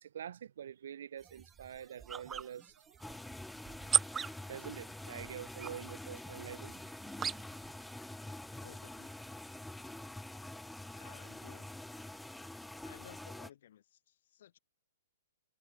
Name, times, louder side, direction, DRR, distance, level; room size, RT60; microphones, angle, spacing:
voice 1, 0.0-3.0 4.5-6.7, right 9 dB, 55° right, 3.0 m, -46 dB
sound 1, 1.2-7.7, right 7 dB, 15° right, 0.6 m, -39 dB
sound 2, 3.0-13.5, left 1 dB, 5° left, 3.2 m, -46 dB
voice 2, 8.6-9.1 10.9-11.7 12.8-14.6, left 11 dB, 50° left, 3.4 m, -57 dB
figure-of-eight pair, 115°, 0 cm